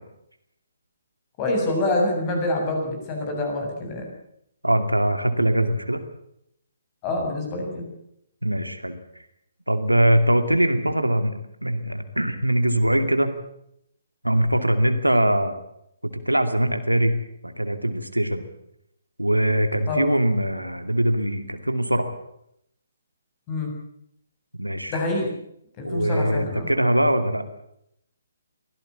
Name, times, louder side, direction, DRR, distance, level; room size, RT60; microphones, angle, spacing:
voice 1, 1.4-4.0 7.0-7.9 19.9-20.1 23.5-23.7 24.9-25.3 25.8-26.7, left 2 dB, 25° left, 2 dB, 7.6 m, -26 dB
voice 2, 4.6-6.0 8.4-9.0 9.7-13.3 14.2-15.6 16.0-17.2 17.4-18.5 19.2-22.1 24.6-25.0 25.8-27.4, right 1 dB, 90° right, 8 dB, 2.5 m, -22 dB
23.5 x 16.5 x 8.4 m, 0.76 s
figure-of-eight pair, 135°, 0 cm